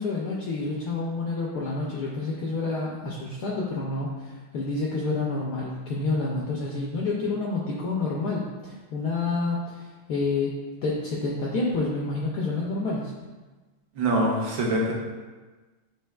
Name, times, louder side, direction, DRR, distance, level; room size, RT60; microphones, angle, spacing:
voice 1, 0.0-10.5 10.8-13.1, left 3 dB, 75° left, -3 dB, 0.9 m, -28 dB
voice 2, 14.0-14.9, right 1 dB, 75° right, -2 dB, 1.6 m, -24 dB
7.4 x 3.1 x 2.3 m, 1.3 s
omnidirectional pair, 2.3 m